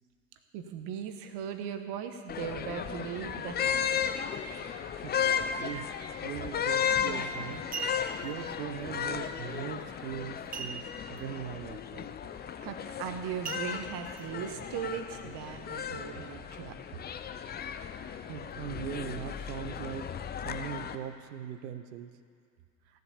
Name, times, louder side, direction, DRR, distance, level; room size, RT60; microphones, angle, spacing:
voice 1, 0.5-3.9 12.4-17.0, right 8 dB, 50° right, 7 dB, 1.4 m, -39 dB
sound 1, 2.3-20.9, left 8 dB, 20° left, 0.5 m, -35 dB
voice 2, 5.6-5.9 6.2-7.6 8.2-12.1 18.3-20.1 20.4-22.2, right 9 dB, 75° right, 11 dB, 0.9 m, -40 dB
sound 2, 6.9-7.1 7.5-8.3 10.5-11.2 11.5-11.6 12.1-12.4 13.4-14.2 14.8-14.9, right 5 dB, 15° right, 0.7 m, -40 dB
16.5 x 7.7 x 7.1 m, 2.2 s
figure-of-eight pair, 70°, 50 cm